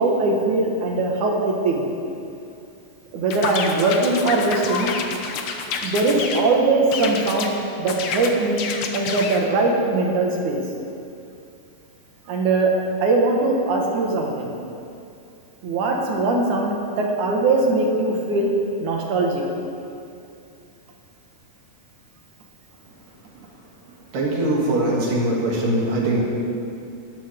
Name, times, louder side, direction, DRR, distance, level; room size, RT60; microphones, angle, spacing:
voice 1, 0.0-1.8 3.1-4.9 5.8-7.5 7.8-8.6 8.9-10.6 12.3-12.7 13.0-14.6 15.6-18.5 18.8-19.4, right 3 dB, 70° right, 0 dB, 3.0 m, -21 dB
sound 1, 3.3-6.5 6.9-7.5 7.9-9.4, left 5 dB, 65° left, 1.3 m, -28 dB
voice 2, 24.1-26.2, right 1 dB, 85° right, -4 dB, 4.4 m, -21 dB
20.0 x 14.0 x 3.7 m, 2.6 s
omnidirectional pair, 3.7 m